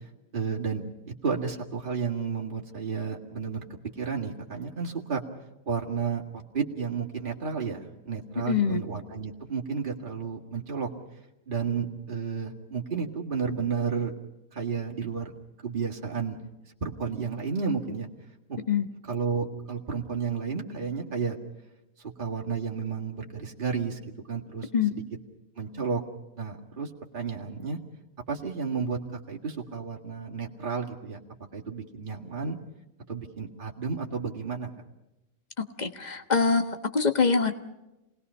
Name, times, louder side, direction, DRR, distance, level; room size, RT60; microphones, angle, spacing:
voice 1, 0.3-3.6 4.0-5.2 5.7-6.2 6.5-10.9 11.5-14.1 14.5-15.3 15.6-16.4 16.8-18.1 18.5-18.6 19.0-21.4 22.0-24.0 24.3-25.0 25.6-26.0 26.4-27.8 28.3-31.2 31.5-32.6 33.1-34.7, right 5 dB, 35° right, -1 dB, 2.2 m, -32 dB
voice 2, 8.5-8.8 18.7-18.9 24.7-24.9 35.8-37.5, left 5 dB, 30° left, 8 dB, 1.4 m, -24 dB
28.0 x 20.0 x 5.6 m, 0.97 s
omnidirectional pair, 1.5 m